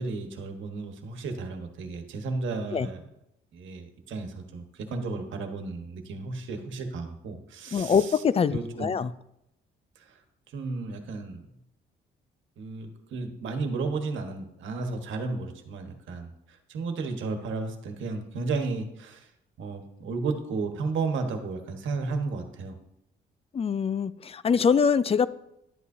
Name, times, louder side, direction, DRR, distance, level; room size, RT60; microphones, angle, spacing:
voice 1, 0.0-3.0 3.5-8.2 8.5-8.9 10.0-10.2 10.5-11.4 12.6-19.3 19.6-22.8, right 3 dB, 75° right, 5 dB, 1.4 m, -33 dB
voice 2, 7.7-9.1 23.5-25.3, left 6 dB, 30° left, 16 dB, 0.4 m, -24 dB
11.5 x 8.2 x 2.8 m, 0.82 s
cardioid pair, 90°, 20 cm